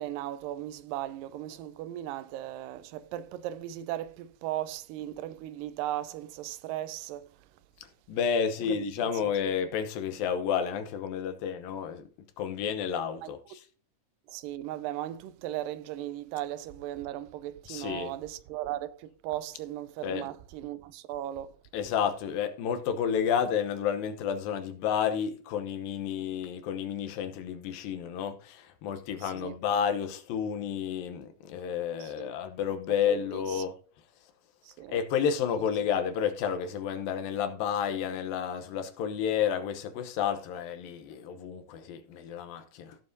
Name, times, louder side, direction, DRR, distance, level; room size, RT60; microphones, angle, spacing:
voice 1, 0.0-7.5 8.7-8.9 9.3-9.4 13.2-13.3 14.3-21.6 29.2-29.6 32.0-32.3 33.1-33.7 34.6-35.0, right 13 dB, 85° right, 2.3 m, -37 dB
voice 2, 8.1-12.1 12.4-13.6 17.7-18.1 20.0-20.3 21.7-33.7 34.9-43.0, left 8 dB, 90° left, 2.8 m, -31 dB
16.5 x 7.2 x 2.7 m
omnidirectional pair, 4.0 m